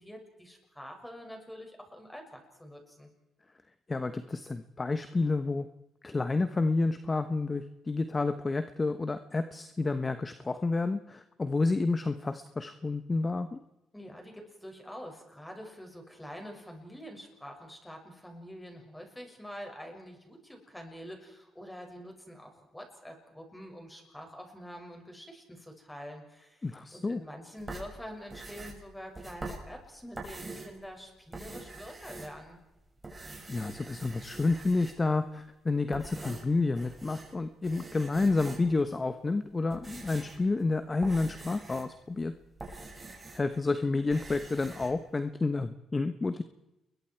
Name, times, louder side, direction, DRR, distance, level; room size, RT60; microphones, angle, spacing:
voice 1, 0.0-3.1 13.9-32.6, equal, 5° left, 3 dB, 6.4 m, -46 dB
voice 2, 3.9-5.7 6.0-13.6 26.6-27.2 33.5-42.3 43.3-46.4, left 3 dB, 25° left, 10 dB, 1.2 m, -30 dB
sound 1, 27.6-30.8 31.2-32.7 33.0-35.2 35.7-37.4 37.6-38.8 39.4-43.6 43.9-44.9, right 2 dB, 20° right, 6.4 m, -45 dB
29.0 x 22.5 x 4.7 m, 0.95 s
cardioid pair, 90°, 0 cm